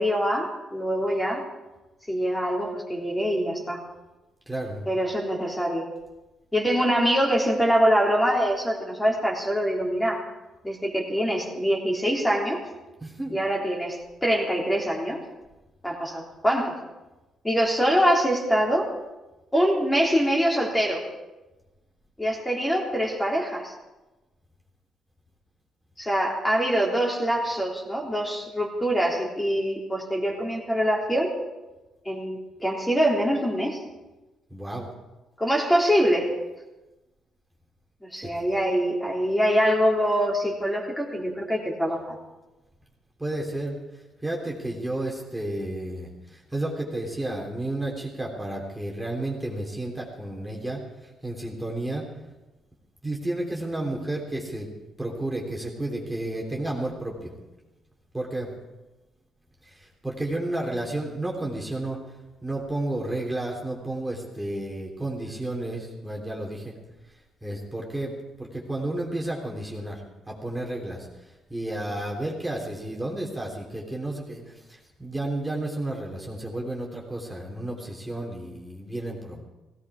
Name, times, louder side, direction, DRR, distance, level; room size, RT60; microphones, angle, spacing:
voice 1, 0.0-1.5 2.1-3.8 4.9-5.9 6.5-10.2 10.6-12.6 13.3-15.2 15.8-16.8 17.4-18.9 19.5-21.1 22.2-23.7 26.0-31.3 32.1-33.8 35.4-36.3 38.1-42.2, equal, 10° left, -2 dB, 3.5 m, -24 dB
voice 2, 4.5-4.9 13.0-13.4 34.5-34.9 38.2-38.3 43.2-43.8 44.2-52.1 53.0-54.7 55.0-57.3 58.1-58.5 59.6-62.0 62.4-66.8 67.4-68.1 68.4-71.1 71.5-79.4, right 1 dB, 10° right, -2 dB, 3.1 m, -32 dB
16.5 x 16.5 x 4.8 m, 1.1 s
cardioid pair, 90°, 0 cm